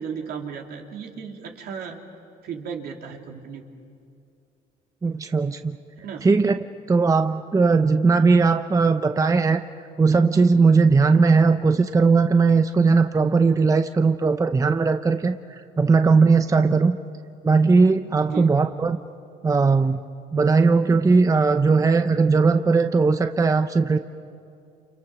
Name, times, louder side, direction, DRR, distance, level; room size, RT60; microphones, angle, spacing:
voice 1, 0.0-2.0 2.4-3.6 6.0-6.3 18.2-18.5, right 7 dB, 70° right, 1 dB, 3.1 m, -35 dB
voice 2, 5.0-5.8 6.2-6.6 6.9-9.6 10.0-17.0 17.4-19.0 19.4-20.0 20.3-24.0, right 4 dB, 20° right, 8 dB, 0.7 m, -18 dB
29.5 x 28.5 x 6.1 m, 2.5 s
cardioid pair, 110°, 17 cm